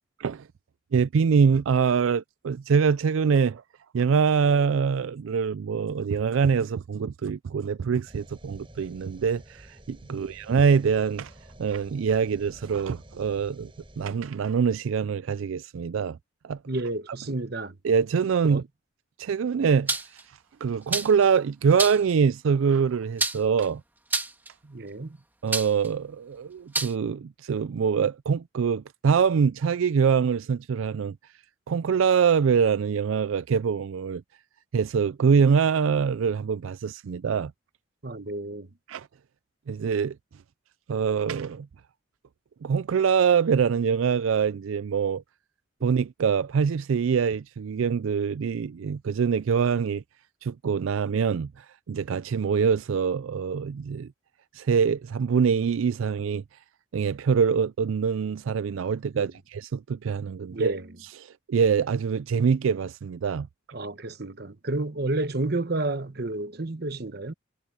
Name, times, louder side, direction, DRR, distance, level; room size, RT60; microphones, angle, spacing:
voice 1, 0.9-3.6 3.9-11.3 11.6-13.7 14.0-16.2 16.4-16.6 17.8-18.6 19.2-23.8 25.4-31.2 31.7-34.2 34.7-37.5 38.9-39.1 39.7-40.2 40.9-41.7 42.6-45.2 45.8-50.0 50.4-54.1 54.5-56.4 56.9-60.7 61.5-63.5, right 6 dB, 80° right, 0.4 m, -24 dB
sound 1, 8.1-14.1, right 1 dB, 25° right, 6.1 m, -50 dB
voice 2, 16.7-17.8 18.4-18.6 24.6-25.2 38.0-38.7 59.2-59.3 60.5-61.0 63.7-67.3, right 2 dB, 50° right, 1.0 m, -31 dB
sound 2, 19.9-20.2 20.9-21.2 21.8-22.1 23.2-23.6 24.1-24.5 25.5-25.9 26.7-26.9, right 2 dB, 10° right, 1.6 m, -28 dB
head